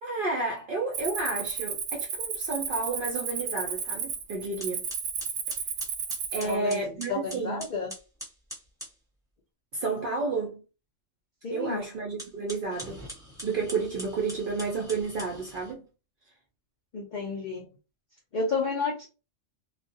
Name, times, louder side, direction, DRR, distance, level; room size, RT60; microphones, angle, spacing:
voice 1, 0.0-4.9 6.3-7.6 9.7-10.6 11.5-13.0 13.4-15.9, right 3 dB, 65° right, 0.5 m, -31 dB
Cricket, 0.9-6.5, right 7 dB, 85° right, 1.0 m, -33 dB
sound 1, 4.1-4.2 4.6-9.0 12.1-15.7, equal, 5° right, 0.8 m, -43 dB
voice 2, 6.4-7.9 11.4-11.8 16.9-17.7 18.3-19.1, left 4 dB, 70° left, 0.4 m, -31 dB
2.3 x 2.0 x 2.6 m
omnidirectional pair, 1.4 m